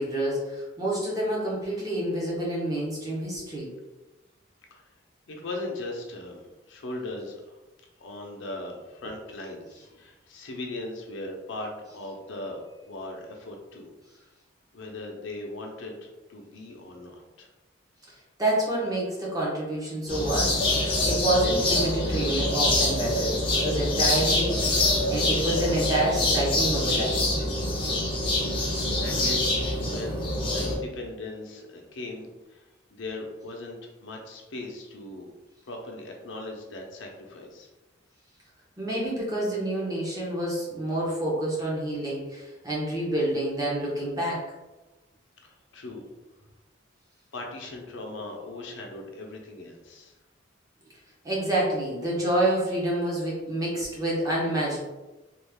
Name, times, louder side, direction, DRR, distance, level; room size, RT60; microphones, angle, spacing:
voice 1, 0.0-3.7 18.4-20.6 21.0-24.7 25.1-27.2 38.8-44.4 51.2-54.8, right 1 dB, 20° right, -5 dB, 0.9 m, -28 dB
voice 2, 5.3-7.6 8.0-13.9 14.7-17.5 28.6-35.3 35.6-37.7 45.4-46.0 47.3-50.1, left 2 dB, 70° left, 1 dB, 0.6 m, -39 dB
sound 1, 20.1-30.8, left 1 dB, 25° left, 0.6 m, -25 dB
3.1 x 2.4 x 3.5 m, 1.1 s
head